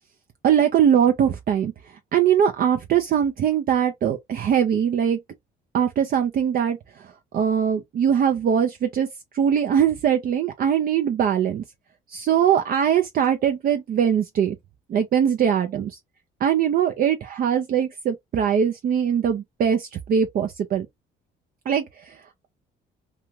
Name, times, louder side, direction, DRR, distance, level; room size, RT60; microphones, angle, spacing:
voice 1, 0.4-1.7 2.1-5.2 5.7-9.1 9.3-11.6 12.1-14.6 14.9-16.0 16.4-20.9 21.7-22.2, right 8 dB, 50° right, 0.5 m, -21 dB
2.5 x 2.4 x 3.0 m
cardioid pair, 95°, 19 cm